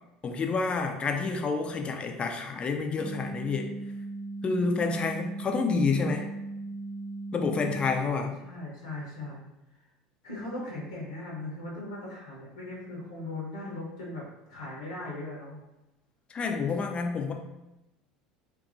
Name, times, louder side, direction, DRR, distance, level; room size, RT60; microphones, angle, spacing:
voice 1, 0.2-3.7 4.4-6.3 7.3-8.3 16.3-17.3, left 4 dB, 30° left, 4 dB, 0.4 m, -28 dB
sound 1, 3.0-8.0, right 2 dB, 35° right, 0.5 m, -38 dB
voice 2, 8.4-9.4 10.2-15.6, left 2 dB, 75° left, -4 dB, 0.7 m, -38 dB
2.6 x 2.5 x 2.4 m, 0.96 s
hypercardioid pair, 70°, 4 cm